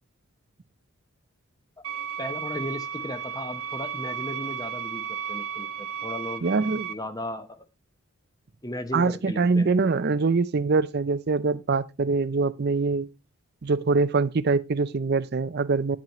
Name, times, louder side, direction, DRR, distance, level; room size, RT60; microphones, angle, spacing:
sound 1, 1.8-6.9, right 8 dB, 80° right, 1.8 m, -34 dB
voice 1, 2.2-6.5 6.9-7.7 8.6-9.7, left 1 dB, 15° left, 0.8 m, -36 dB
voice 2, 6.4-6.9 8.9-13.1 13.6-16.0, right 4 dB, 45° right, 0.5 m, -24 dB
9.3 x 7.5 x 3.1 m
head